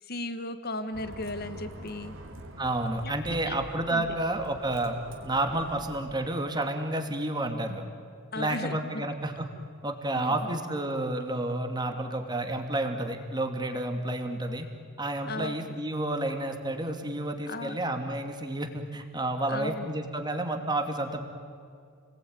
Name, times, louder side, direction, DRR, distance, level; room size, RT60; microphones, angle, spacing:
voice 1, 0.0-2.2 3.0-3.6 3.9-4.2 8.3-9.1 10.1-10.5 15.3-15.7 17.5-17.8 19.5-19.9, left 2 dB, 50° left, 10 dB, 1.8 m, -36 dB
Bus, 0.9-6.1, right 1 dB, 80° right, 3.2 m, -45 dB
voice 2, 2.6-5.0 5.2-7.8 8.3-9.5 9.8-14.7 15.0-21.2, right 1 dB, 20° right, 5 dB, 2.6 m, -30 dB
30.0 x 20.5 x 9.7 m, 2.3 s
head